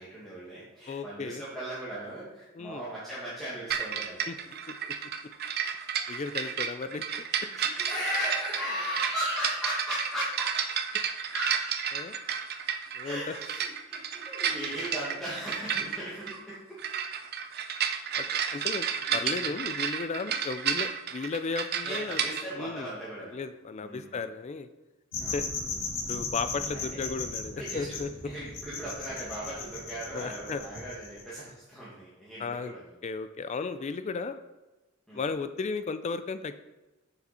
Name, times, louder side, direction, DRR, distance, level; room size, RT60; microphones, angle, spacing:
voice 1, 0.0-4.3 6.3-6.6 7.5-10.5 11.3-11.7 13.0-16.8 18.2-18.7 19.1-19.4 21.8-23.4 23.8-24.2 25.2-25.5 26.6-27.1 27.6-28.0 28.2-32.9 35.1-35.2, equal, ahead, -9 dB, 1.9 m, -37 dB
voice 2, 0.9-1.4 2.6-2.8 4.3-4.4 6.1-7.0 11.9-12.1 13.0-13.3 18.1-22.2 22.6-22.9 23.3-24.7 25.3-25.5 26.1-28.1 30.1-30.6 32.4-32.8 33.0-34.4 35.1-36.5, left 4 dB, 35° left, 11 dB, 0.3 m, -34 dB
sound 1, 3.7-22.5, right 7 dB, 50° right, 0.6 m, -32 dB
sound 2, 25.1-31.3, left 4 dB, 60° left, 2.2 m, -37 dB
6.9 x 6.9 x 4.2 m, 1.1 s
head